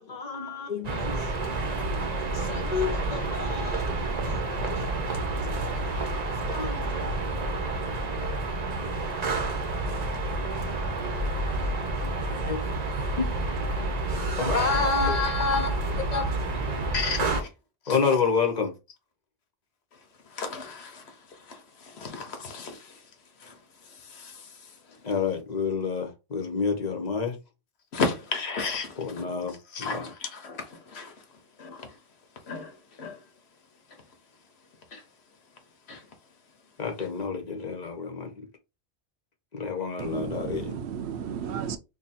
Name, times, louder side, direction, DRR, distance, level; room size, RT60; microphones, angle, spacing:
voice 1, 0.0-1.2 2.3-4.8 5.7-5.8 6.5-6.8 8.3-8.6 9.0-9.5 10.3-10.4 12.4-12.8 13.2-16.9 17.9-18.7 25.0-27.4 29.0-29.9 36.8-38.3 39.5-40.8, left 5 dB, 40° left, 0.9 m, -30 dB
sound 1, 0.8-17.4, right 2 dB, 45° right, 0.7 m, -29 dB
voice 2, 16.9-17.5 17.8-18.1 19.9-23.1 23.4-25.1 27.9-32.0 32.4-33.3 33.9-34.0 34.9-35.1 35.9-36.1, left 4 dB, 70° left, 1.1 m, -35 dB
voice 3, 40.0-41.8, right 8 dB, 75° right, 0.8 m, -33 dB
2.8 x 2.7 x 4.0 m
omnidirectional pair, 1.1 m